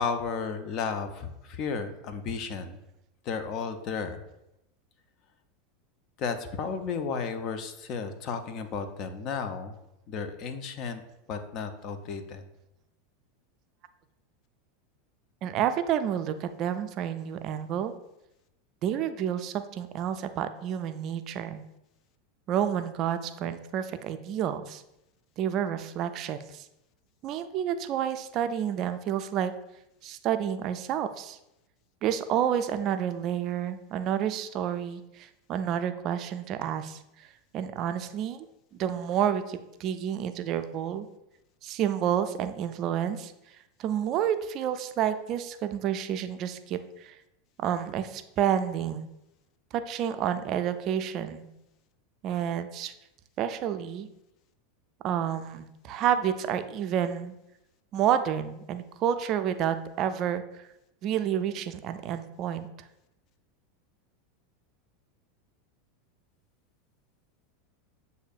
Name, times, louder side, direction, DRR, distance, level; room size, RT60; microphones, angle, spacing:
voice 1, 0.0-2.8 3.2-4.2 6.2-9.8 10.1-11.0 11.3-12.5, left 5 dB, 45° left, 8 dB, 0.5 m, -33 dB
voice 2, 15.4-17.9 18.8-21.6 22.5-24.8 25.4-26.6 27.2-29.5 30.0-31.4 32.0-37.3 37.5-38.5 38.7-41.1 41.6-43.3 43.8-47.1 47.6-49.1 49.7-51.5 52.2-52.9 53.4-54.1 55.0-57.4 57.9-60.4 61.0-62.7, right 9 dB, 45° right, 10 dB, 0.3 m, -29 dB
8.0 x 2.7 x 2.4 m, 0.87 s
hypercardioid pair, 90°, 0 cm